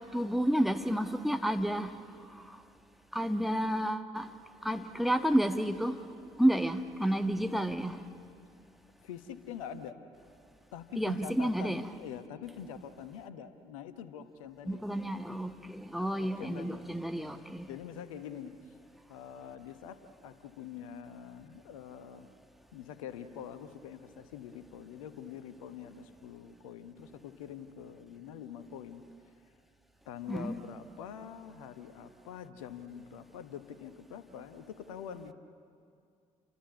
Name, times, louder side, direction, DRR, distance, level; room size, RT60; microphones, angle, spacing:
voice 1, 0.1-2.0 2.3-2.6 3.1-4.3 4.6-6.0 6.4-8.0 11.0-11.8 14.7-17.7 30.3-30.6, right 1 dB, ahead, 1.4 m, -30 dB
voice 2, 9.0-10.0 10.7-14.8 16.2-16.9 17.7-18.7 19.1-22.3 22.7-29.0 30.0-35.3, left 8 dB, 75° left, 1.1 m, -45 dB
30.0 x 24.0 x 8.2 m
figure-of-eight pair, 45°, 17 cm